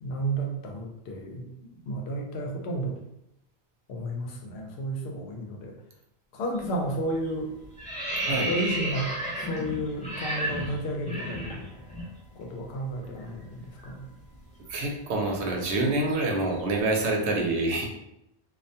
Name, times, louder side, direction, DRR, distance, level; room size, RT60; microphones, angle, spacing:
voice 1, 0.0-3.0 3.9-5.7 6.3-7.5 8.4-9.1 9.4-11.7 12.4-14.0, right 1 dB, 80° left, 1 dB, 0.8 m, -32 dB
sound 1, 6.5-6.8 7.1-12.1 12.4-12.5 12.9-16.9, right 1 dB, 10° left, 0.6 m, -34 dB
voice 2, 14.7-17.9, right 2 dB, 85° right, 1 dB, 0.9 m, -26 dB
2.3 x 2.2 x 2.6 m, 0.84 s
omnidirectional pair, 1.1 m